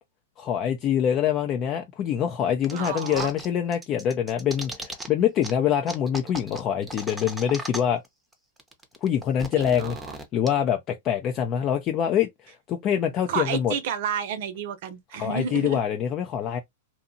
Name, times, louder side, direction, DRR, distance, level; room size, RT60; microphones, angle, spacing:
voice 1, 0.4-8.0 9.0-10.0 10.3-13.7 15.2-16.6, left 9 dB, 35° left, 0.5 m, -25 dB
sound 1, 2.6-3.5 3.7-5.1 5.4-5.5 5.9-8.1 8.3-8.4 8.6-10.5, right 1 dB, 10° right, 0.7 m, -37 dB
voice 2, 2.7-3.3 9.5-10.2 13.3-15.8, right 7 dB, 60° right, 0.7 m, -31 dB
2.7 x 2.3 x 2.6 m
hypercardioid pair, 120°, 0 cm